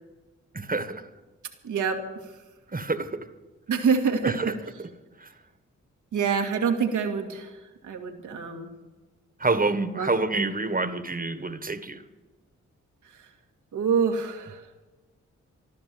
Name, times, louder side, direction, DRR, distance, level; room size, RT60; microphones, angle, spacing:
voice 1, 0.5-1.1 2.7-3.3 4.2-4.5 5.2-5.3 9.4-12.0, right 3 dB, 30° right, 11 dB, 1.5 m, -27 dB
voice 2, 1.6-2.4 3.7-4.5 6.1-8.7 10.0-10.1 13.0-13.3 13.7-14.7, right 6 dB, 85° right, 4 dB, 2.0 m, -27 dB
14.5 x 12.0 x 7.7 m, 1.2 s
supercardioid pair, 50°, 30 cm